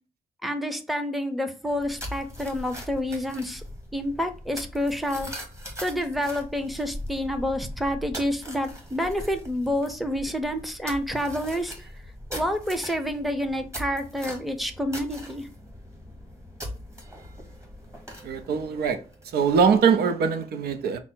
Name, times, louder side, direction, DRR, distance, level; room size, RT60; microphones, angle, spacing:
voice 1, 0.4-3.6 3.9-5.3 5.8-11.9 12.3-15.5, equal, ahead, 0.6 m, -28 dB
sound 1, 1.6-19.6, equal, 20° right, 1.3 m, -41 dB
voice 2, 18.2-21.0, right 6 dB, 90° right, 0.5 m, -23 dB
5.5 x 2.0 x 4.4 m
cardioid pair, 105°, 16 cm